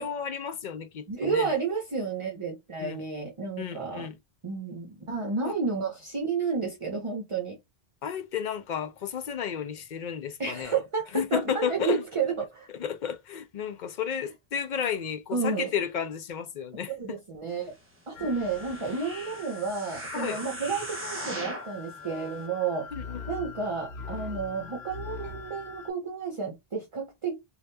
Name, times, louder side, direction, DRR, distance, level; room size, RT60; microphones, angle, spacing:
voice 1, 0.0-1.5 2.8-3.0 3.6-4.1 5.4-5.5 8.0-10.7 11.1-12.0 12.7-17.2 20.1-20.4 22.9-23.2, left 7 dB, 55° left, 0.6 m, -32 dB
voice 2, 1.1-4.1 4.4-7.6 10.4-12.7 15.3-15.7 16.9-17.7 18.1-22.9 23.3-27.4, right 5 dB, 35° right, 0.6 m, -31 dB
sound 1, 18.1-25.9, left 5 dB, 80° left, 0.9 m, -42 dB
sound 2, 18.2-21.8 22.4-22.5, right 1 dB, 15° right, 1.0 m, -39 dB
2.8 x 2.4 x 3.3 m
omnidirectional pair, 1.0 m